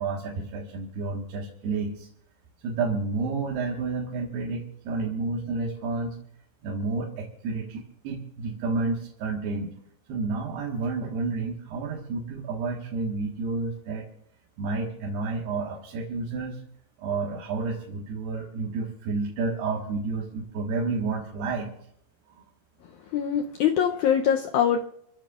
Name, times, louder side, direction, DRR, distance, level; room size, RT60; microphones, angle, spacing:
voice 1, 0.0-2.1 2.6-6.2 6.6-9.7 10.1-14.1 14.6-16.6 17.0-21.7, right 3 dB, 85° right, -2 dB, 3.7 m, -30 dB
voice 2, 23.1-24.8, left 8 dB, 90° left, 3 dB, 1.7 m, -23 dB
28.0 x 15.5 x 2.5 m, 0.69 s
omnidirectional pair, 4.5 m